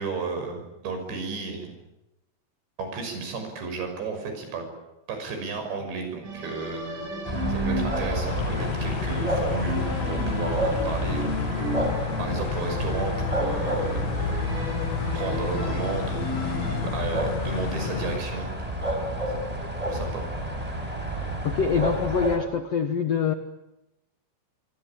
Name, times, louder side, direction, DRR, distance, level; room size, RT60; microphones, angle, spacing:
voice 1, 0.0-1.7 2.8-4.7 5.1-6.8 7.6-11.3 12.2-14.0 15.1-18.5 19.9-20.2, right 4 dB, 75° right, 5 dB, 8.3 m, -33 dB
sound 1, 6.2-16.8, right 1 dB, 45° right, 7.6 m, -34 dB
sound 2, 7.2-22.4, right 1 dB, 10° right, 4.9 m, -30 dB
sound 3, 8.3-18.2, left 13 dB, 65° left, 3.1 m, -32 dB
voice 2, 21.4-23.3, left 6 dB, 90° left, 7 dB, 1.4 m, -25 dB
27.5 x 23.5 x 8.9 m, 0.93 s
omnidirectional pair, 5.1 m